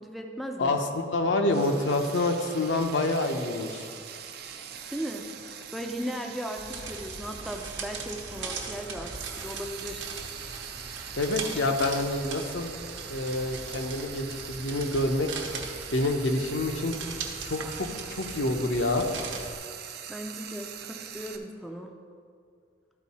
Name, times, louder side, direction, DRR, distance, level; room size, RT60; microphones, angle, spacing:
voice 1, 0.0-0.8 4.9-10.1 20.1-21.9, equal, ahead, 3 dB, 0.4 m, -37 dB
voice 2, 0.6-3.9 11.2-12.7 13.1-15.3 15.9-17.0 17.4-19.1, left 2 dB, 75° left, 4 dB, 0.7 m, -27 dB
Frying (food), 1.5-21.4, right 8 dB, 55° right, 0.5 m, -42 dB
sound 1, 6.6-19.5, right 4 dB, 80° right, 1.0 m, -40 dB
12.5 x 4.5 x 4.2 m, 2.2 s
head